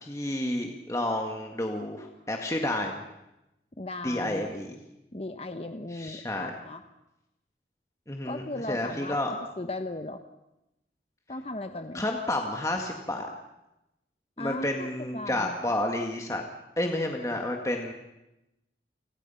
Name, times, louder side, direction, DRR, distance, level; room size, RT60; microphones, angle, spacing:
voice 1, 0.0-3.0 4.0-4.8 5.9-6.6 8.1-8.4 8.7-9.3 11.9-13.3 14.4-16.4 16.8-17.9, left 1 dB, 20° left, 2 dB, 1.9 m, -30 dB
voice 2, 3.8-4.5 5.1-6.8 8.2-10.2 11.3-12.0 14.4-14.9 15.1-15.6, left 2 dB, 35° left, 7 dB, 1.1 m, -37 dB
29.5 x 25.0 x 5.8 m, 0.91 s
head